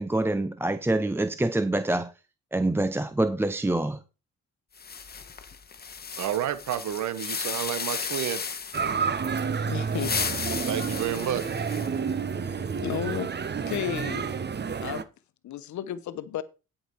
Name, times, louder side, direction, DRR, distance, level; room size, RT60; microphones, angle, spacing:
voice 1, 0.0-2.1 2.5-4.0, right 2 dB, 10° right, 0.6 m, -26 dB
sound 1, 4.8-9.0 9.8-12.1, left 6 dB, 30° left, 1.3 m, -34 dB
voice 2, 6.2-8.4 10.7-11.4, right 11 dB, 75° right, 1.0 m, -30 dB
sound 2, 8.7-15.0, right 6 dB, 35° right, 1.0 m, -30 dB
voice 3, 9.7-10.1 12.8-13.3 13.7-14.3 14.8-15.1 15.4-16.4, left 10 dB, 70° left, 1.0 m, -32 dB
11.5 x 5.9 x 4.6 m
cardioid pair, 90°, 30 cm